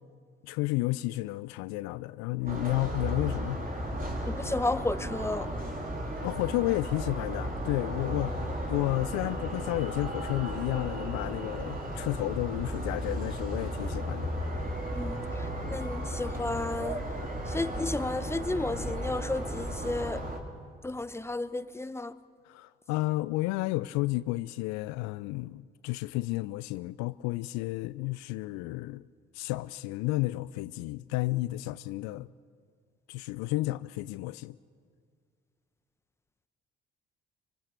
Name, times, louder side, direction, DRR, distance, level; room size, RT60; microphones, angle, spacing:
voice 1, 0.4-3.6 6.2-14.3 22.5-29.0 29.3-32.3 33.1-34.6, left 19 dB, 65° left, 0.5 m, -32 dB
sound 1, 2.5-20.4, equal, 30° right, 4.0 m, -35 dB
voice 2, 4.3-5.5 14.9-17.0 17.5-20.2 20.8-22.1, left 2 dB, 10° left, 1.1 m, -33 dB
25.0 x 25.0 x 6.7 m
figure-of-eight pair, 45°, 30 cm